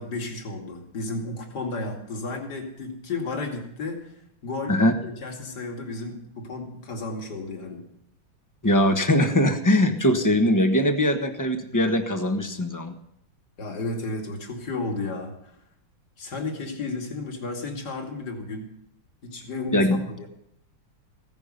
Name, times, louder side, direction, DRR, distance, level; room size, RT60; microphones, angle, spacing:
voice 1, 0.0-4.2 4.4-4.8 5.0-7.8 13.6-15.6 16.2-18.7 19.2-20.3, left 3 dB, 55° left, 2 dB, 3.0 m, -33 dB
voice 2, 8.6-13.0 19.7-20.0, left 1 dB, 10° left, 6 dB, 1.0 m, -21 dB
16.0 x 11.0 x 6.7 m, 0.73 s
omnidirectional pair, 2.2 m